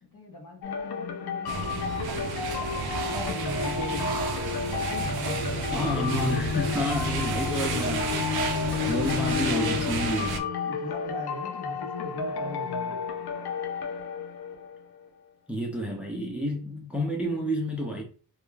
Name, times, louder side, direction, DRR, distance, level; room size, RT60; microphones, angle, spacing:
voice 1, 0.0-4.3 4.8-6.6 7.8-8.3 8.8-10.3 10.7-13.0, equal, 55° left, 0.8 m, -39 dB
sound 1, 0.6-15.1, left 6 dB, 90° left, 0.5 m, -31 dB
sound 2, 1.5-10.4, right 6 dB, 80° right, 0.5 m, -32 dB
voice 2, 5.7-8.4 8.9-10.4 15.5-18.0, equal, 5° right, 0.4 m, -30 dB
2.3 x 2.1 x 3.1 m
wide cardioid pair, 145°, 37 cm